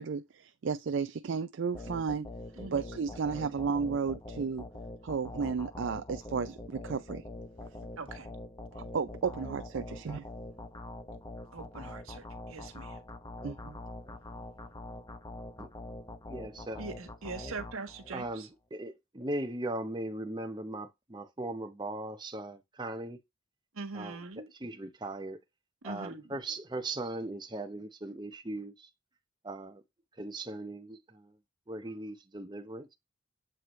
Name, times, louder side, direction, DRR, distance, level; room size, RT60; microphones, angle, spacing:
voice 1, 0.0-2.3 2.7-4.6 5.0-7.2 8.7-10.3 13.4-13.8, right 5 dB, 60° right, 0.4 m, -33 dB
sound 1, 1.7-18.4, left 1 dB, 20° left, 0.8 m, -44 dB
voice 2, 8.0-8.3 11.5-13.0 16.8-18.5 23.7-24.5 25.8-26.2, right 3 dB, 85° right, 1.5 m, -42 dB
voice 3, 16.3-16.9 18.1-23.2 23.9-25.4 25.8-28.9 29.4-29.8 30.1-31.4 31.7-32.9, right 2 dB, 20° right, 0.8 m, -39 dB
7.7 x 4.6 x 3.1 m
head